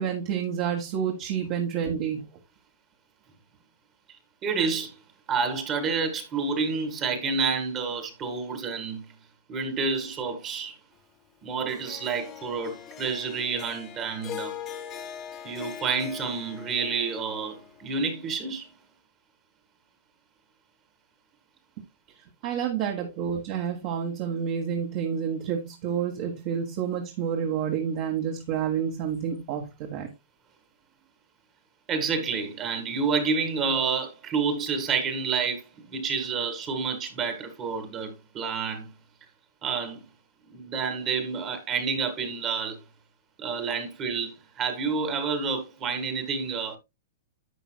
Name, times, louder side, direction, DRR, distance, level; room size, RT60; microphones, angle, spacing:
voice 1, 0.0-2.3 22.4-30.1, right 8 dB, 35° right, 1.6 m, -29 dB
voice 2, 4.4-4.9 5.3-9.1 9.5-10.8 11.4-14.5 15.4-18.7 31.9-35.6 35.9-38.9 39.6-40.0 40.5-42.8 43.4-46.8, right 5 dB, 20° right, 1.8 m, -29 dB
Harp, 11.7-18.1, left 9 dB, 20° left, 1.3 m, -41 dB
11.0 x 8.3 x 2.3 m
hypercardioid pair, 165°, 0 cm